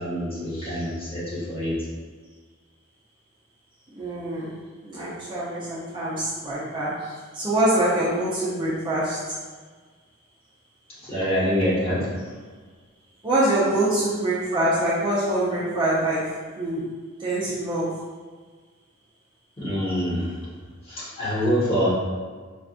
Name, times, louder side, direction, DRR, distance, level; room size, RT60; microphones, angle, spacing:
voice 1, 0.0-1.7 11.0-12.0 19.6-20.4 20.8-21.9, equal, 30° left, -10 dB, 1.2 m, -25 dB
voice 2, 4.0-4.5 4.8-9.2 13.2-16.2 16.6-16.9 17.2-17.9, right 1 dB, 25° right, -9 dB, 0.6 m, -24 dB
4.3 x 2.4 x 2.4 m, 1.5 s
head